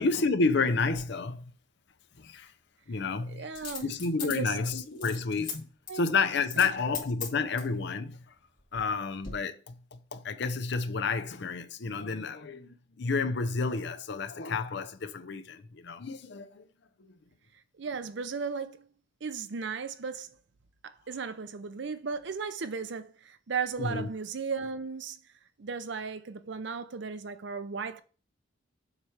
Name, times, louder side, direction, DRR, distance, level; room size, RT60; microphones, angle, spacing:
voice 1, 0.0-1.4 2.2-2.5 2.9-3.5 3.8-5.7 5.9-8.2 8.7-16.6 23.8-24.1, left 4 dB, 60° left, 0.6 m, -30 dB
Coin (dropping), 0.9-1.0 3.5-5.5 5.9-6.0 6.5-6.7 6.9-7.7 8.4-8.9 9.2-9.3, left 7 dB, 40° left, 2.5 m, -39 dB
voice 2, 3.3-3.9 4.2-4.6 5.9-6.1 6.6-7.0 17.8-18.9 19.2-20.4 20.8-25.2 25.6-28.0, right 5 dB, 60° right, 0.6 m, -36 dB
7.4 x 3.2 x 4.9 m
head